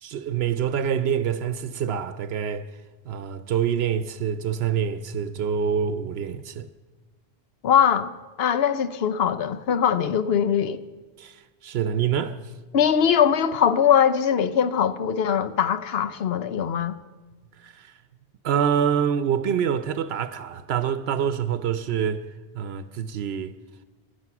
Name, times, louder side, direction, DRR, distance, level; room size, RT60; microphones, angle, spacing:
voice 1, 0.0-2.7 3.0-6.7 11.2-12.5 17.6-17.9 18.4-22.2 22.5-23.5, right 8 dB, 80° right, 0.9 m, -26 dB
voice 2, 7.6-8.1 8.4-10.8 12.7-17.0, left 8 dB, 80° left, 0.9 m, -21 dB
15.5 x 12.0 x 5.8 m
omnidirectional pair, 1.0 m